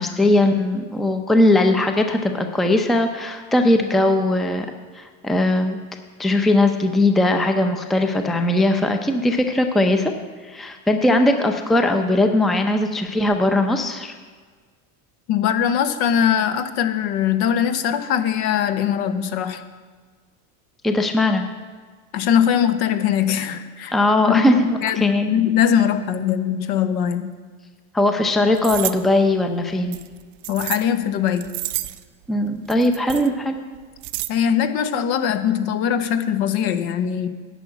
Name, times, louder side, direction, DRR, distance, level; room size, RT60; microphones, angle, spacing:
voice 1, 0.0-4.7 4.9-5.8 6.2-10.1 10.4-14.1 20.8-21.4 23.9-25.3 27.9-30.0 32.3-33.6, left 1 dB, ahead, 6 dB, 0.6 m, -19 dB
voice 2, 15.3-19.6 22.1-23.9 24.3-27.3 30.5-31.5 34.3-37.3, left 9 dB, 55° left, 10 dB, 1.0 m, -21 dB
sound 1, 28.6-28.9 29.9-30.8 31.3-32.0 32.7-33.3 33.7-34.3, right 18 dB, 80° right, 0.7 m, -29 dB
10.5 x 5.8 x 8.3 m, 1.5 s
supercardioid pair, 120°, 45 cm